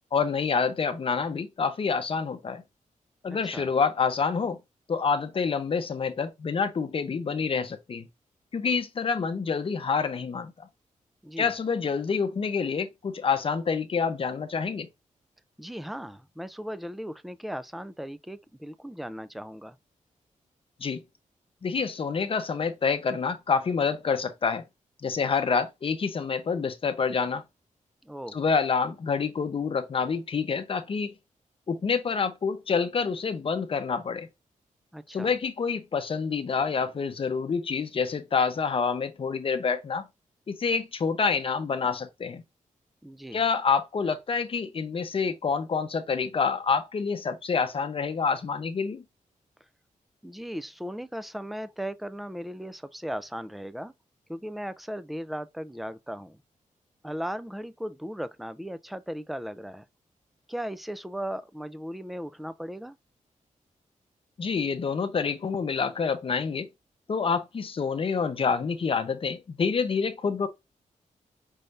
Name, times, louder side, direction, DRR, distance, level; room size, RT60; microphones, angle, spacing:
voice 1, 0.1-2.6 3.2-4.6 4.9-8.1 8.5-10.7 11.4-14.9 20.8-21.0 21.6-24.6 25.0-27.4 28.3-31.1 31.7-34.3 35.1-40.1 40.5-42.4 43.3-49.0 64.4-66.7 67.1-70.5, left 5 dB, 40° left, 0.7 m, -27 dB
voice 2, 3.3-3.7 11.2-11.5 15.6-19.8 28.0-28.4 34.9-35.3 43.0-43.4 50.2-53.9 54.3-56.4 57.0-59.9 60.5-63.0, equal, ahead, 0.3 m, -37 dB
5.5 x 3.3 x 2.5 m
wide cardioid pair, 155°, 14 cm